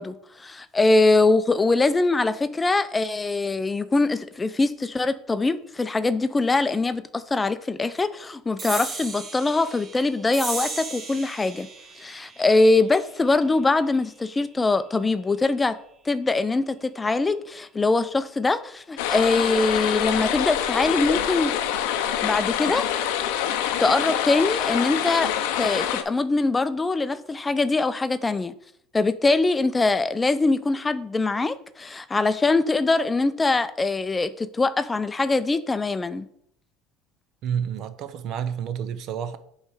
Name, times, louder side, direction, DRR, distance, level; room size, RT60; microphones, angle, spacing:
voice 1, 0.0-11.7 12.0-15.7 16.1-21.5 22.2-22.9 23.8-25.3 25.6-28.5 28.9-36.3, left 3 dB, 20° left, 0.4 m, -23 dB
sound 1, 8.6-15.4, right 4 dB, 40° right, 1.4 m, -37 dB
sound 2, 19.0-26.0, left 10 dB, 75° left, 0.6 m, -25 dB
voice 2, 37.4-39.4, right 8 dB, 55° right, 0.6 m, -29 dB
8.1 x 3.2 x 4.9 m
hypercardioid pair, 85°, 0 cm